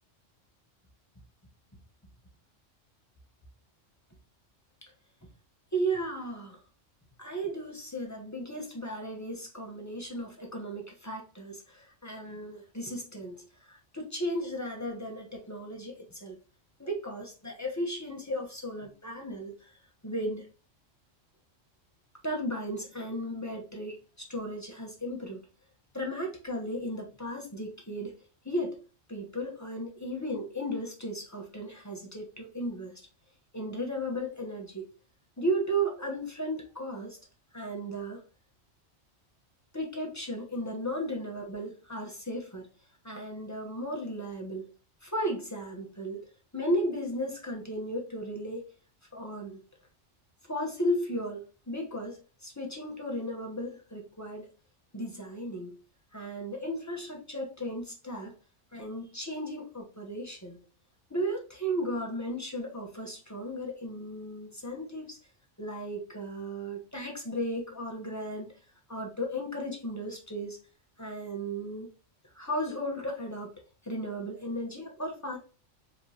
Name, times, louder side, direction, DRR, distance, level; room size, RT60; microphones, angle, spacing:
voice 1, 5.7-6.6 7.2-16.4 16.8-19.7 20.0-20.5 22.2-25.4 25.9-28.1 28.4-28.8 29.1-32.9 33.5-34.9 35.4-37.2 37.5-38.2 39.7-42.7 43.0-44.7 45.0-46.2 46.5-48.6 49.1-49.6 50.4-54.5 54.9-55.8 56.1-58.3 58.7-60.6 61.1-65.2 65.6-68.5 68.9-70.6 71.0-71.9 72.3-73.5 73.8-75.4, equal, 15° left, 1.0 m, -35 dB
5.0 x 3.2 x 2.9 m
omnidirectional pair, 1.3 m